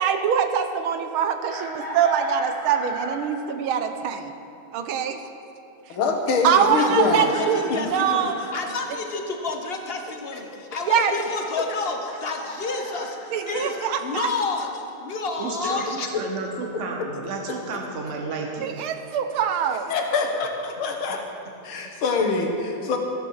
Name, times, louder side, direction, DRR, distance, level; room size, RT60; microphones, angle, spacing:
voice 1, 0.0-4.3 4.7-5.2 6.4-8.4 10.9-11.1 13.3-14.3 18.6-19.8, right 8 dB, 90° right, 7 dB, 1.7 m, -23 dB
Chicken rooster, 1.5-3.4 5.1-5.2 6.7-8.6 12.1-13.9, equal, 70° right, 4.5 m, -36 dB
voice 2, 5.9-7.3 7.7-7.8 10.3-10.4 17.0-17.1 19.9-21.3 21.6-23.0, left 4 dB, 80° left, 3 dB, 2.2 m, -24 dB
voice 3, 6.5-16.1, left 3 dB, 40° left, 4 dB, 1.0 m, -30 dB
voice 4, 15.4-18.8, right 4 dB, 45° right, 1 dB, 1.1 m, -32 dB
13.5 x 12.5 x 4.8 m, 2.8 s
omnidirectional pair, 2.3 m